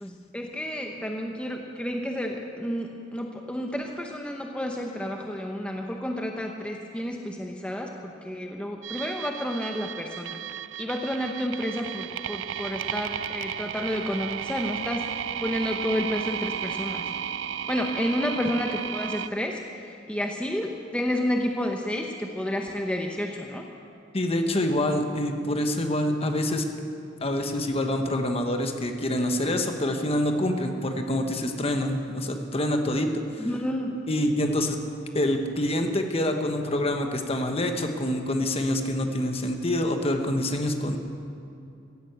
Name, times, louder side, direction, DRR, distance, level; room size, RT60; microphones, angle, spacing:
voice 1, 0.0-10.4 10.8-15.1 15.4-17.1 17.7-23.7 33.4-34.0, equal, 5° left, 2 dB, 0.8 m, -30 dB
sound 1, 8.8-19.3, right 9 dB, 80° right, 0.4 m, -34 dB
voice 2, 24.1-26.6 27.2-33.5 34.1-34.8 35.1-41.0, left 1 dB, 30° left, 5 dB, 1.2 m, -26 dB
15.5 x 10.5 x 8.2 m, 2.6 s
head